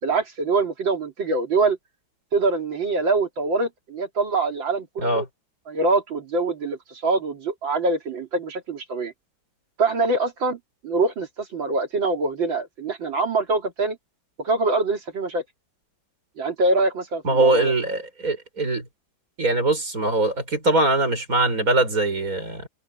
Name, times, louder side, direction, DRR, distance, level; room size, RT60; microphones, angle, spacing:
voice 1, 0.0-1.8 2.3-5.3 5.7-9.1 9.8-10.6 10.8-14.0 14.4-15.4 16.4-17.7, right 3 dB, 75° right, 3.5 m, -24 dB
voice 2, 17.2-18.8 19.4-22.7, right 2 dB, 45° right, 6.7 m, -22 dB
omnidirectional pair, 2.1 m